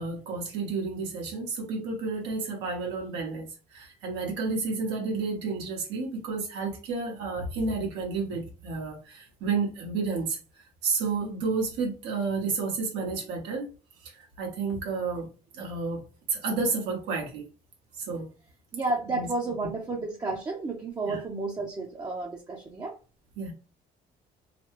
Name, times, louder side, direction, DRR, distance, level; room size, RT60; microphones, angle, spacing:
voice 1, 0.0-13.7 14.0-15.3 15.5-16.0 16.3-17.4 17.9-18.3 19.1-19.3 21.0-21.2 23.4-23.5, right 4 dB, 90° right, 1.4 m, -31 dB
voice 2, 18.7-23.0, right 3 dB, 20° right, 0.7 m, -31 dB
3.2 x 2.2 x 3.1 m
cardioid pair, 110°, 17 cm